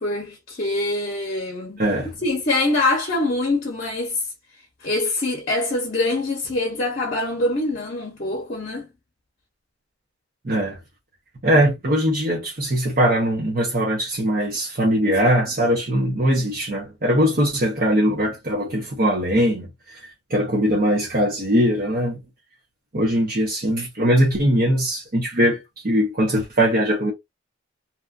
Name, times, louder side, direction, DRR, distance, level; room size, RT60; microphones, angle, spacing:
voice 1, 0.0-1.8 2.2-4.3 4.8-8.9, left 2 dB, 50° left, 0.9 m, -24 dB
voice 2, 1.8-2.1 10.4-10.8 11.4-20.0 20.3-22.2 22.9-27.1, equal, 50° right, 0.9 m, -21 dB
2.9 x 2.4 x 2.5 m
head